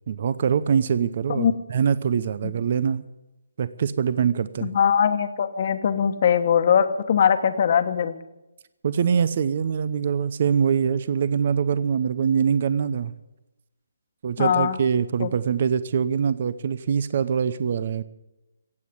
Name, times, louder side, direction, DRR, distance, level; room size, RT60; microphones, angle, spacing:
voice 1, 0.1-3.0 3.6-4.7 8.8-13.1 14.2-18.0, right 7 dB, 45° right, 16 dB, 0.7 m, -23 dB
voice 2, 4.6-8.1 14.4-14.8 15.2-15.3, left 8 dB, 45° left, 9 dB, 1.2 m, -21 dB
15.5 x 8.6 x 9.5 m, 0.98 s
hypercardioid pair, 155°, 0 cm